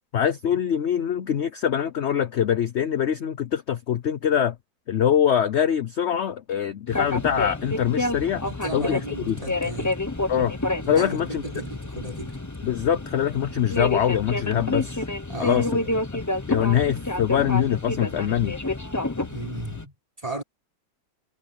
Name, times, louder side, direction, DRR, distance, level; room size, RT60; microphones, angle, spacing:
voice 1, 0.1-4.5 4.9-8.4 8.7-9.0 9.3-9.4 10.3-10.5 10.9-11.4 12.6-15.0 15.4-15.8 16.1-16.2 16.5-18.6, left 9 dB, 55° left, 0.8 m, -23 dB
sound 1, 6.9-19.8, left 2 dB, 15° left, 0.9 m, -29 dB
voice 2, 8.4-10.0 10.8-12.4 15.3-15.9 19.3-20.4, right 2 dB, 20° right, 6.1 m, -35 dB
omnidirectional pair, 1.8 m